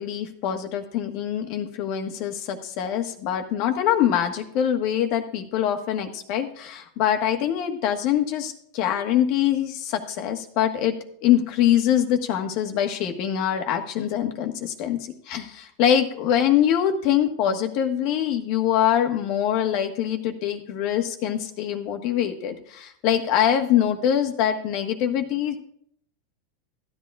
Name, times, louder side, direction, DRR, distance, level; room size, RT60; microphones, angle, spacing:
voice 1, 0.0-10.9 11.2-25.6, left 10 dB, 55° left, 4 dB, 1.4 m, -24 dB
15.0 x 10.5 x 2.4 m, 0.68 s
hypercardioid pair, 100°, 0 cm